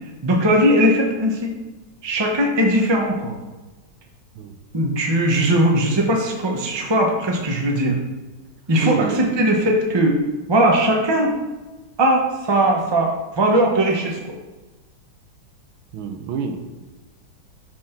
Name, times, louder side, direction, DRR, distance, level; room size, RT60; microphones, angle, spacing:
voice 1, 0.2-1.5 2.0-3.3 4.7-8.0 8.7-10.2 10.5-11.3 12.0-14.2, right 1 dB, 20° right, 0 dB, 0.7 m, -19 dB
voice 2, 8.8-9.2 15.9-16.7, right 5 dB, 80° right, 6 dB, 1.5 m, -27 dB
5.7 x 5.3 x 5.8 m, 1.2 s
omnidirectional pair, 2.2 m